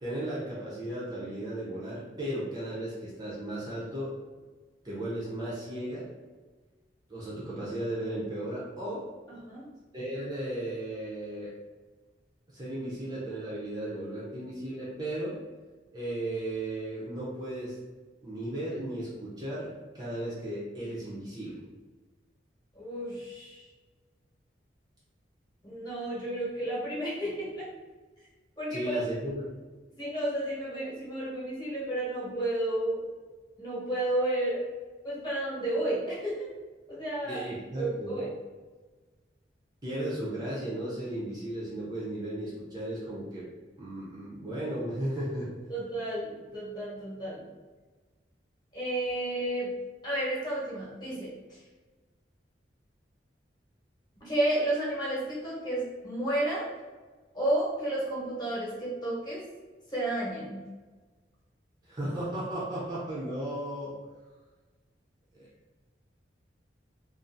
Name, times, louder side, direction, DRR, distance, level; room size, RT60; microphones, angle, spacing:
voice 1, 0.0-4.1 4.8-6.1 7.1-9.0 9.9-11.5 12.5-15.4 15.9-17.8 18.2-21.6 28.7-29.5 37.2-38.2 39.8-43.5 43.8-45.5 61.8-64.0 65.3-65.5, right 1 dB, 20° right, -7 dB, 0.5 m, -35 dB
voice 2, 9.3-9.7 22.8-23.7 25.6-27.7 28.6-29.0 30.0-33.1 33.6-34.6 35.0-36.5 36.9-37.4 37.8-38.3 45.7-47.4 48.7-49.7 50.0-51.3 54.2-56.7 57.3-59.5 59.9-60.6, right 1 dB, 25° left, -8 dB, 0.9 m, -32 dB
2.4 x 2.4 x 2.5 m, 1.3 s
head